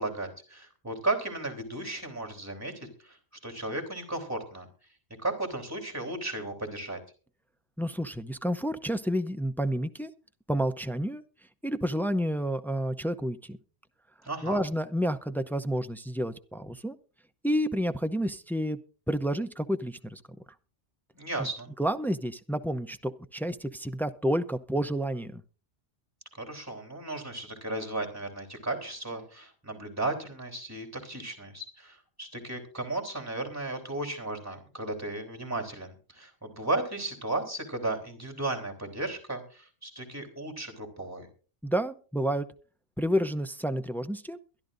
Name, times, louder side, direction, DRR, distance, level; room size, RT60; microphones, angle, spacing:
voice 1, 0.0-4.7 5.2-7.0 14.2-14.6 21.1-21.7 26.3-41.3, right 2 dB, 10° right, 3 dB, 3.3 m, -35 dB
voice 2, 7.8-10.1 10.5-11.2 11.6-13.6 14.4-17.0 17.4-18.8 19.1-20.2 21.8-25.4 41.6-42.5 43.0-44.4, equal, 5° left, 8 dB, 0.3 m, -30 dB
23.0 x 12.0 x 2.6 m, 0.37 s
omnidirectional pair, 1.3 m